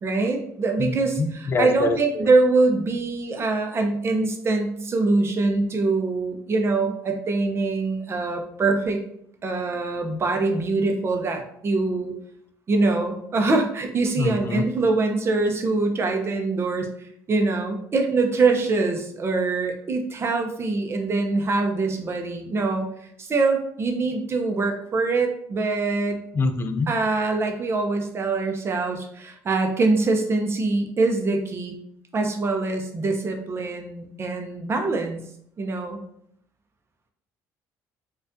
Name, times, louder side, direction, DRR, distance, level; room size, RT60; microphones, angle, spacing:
voice 1, 0.0-9.0 9.4-12.1 12.7-16.9 17.3-22.9 23.2-26.2 26.9-31.8 32.1-35.2 35.6-36.0, right 3 dB, 35° right, 4 dB, 0.7 m, -24 dB
voice 2, 0.8-2.3 14.2-14.6 26.3-26.9, left 3 dB, 30° left, 8 dB, 0.4 m, -25 dB
4.1 x 2.4 x 2.6 m, 0.68 s
cardioid pair, 95°, 7 cm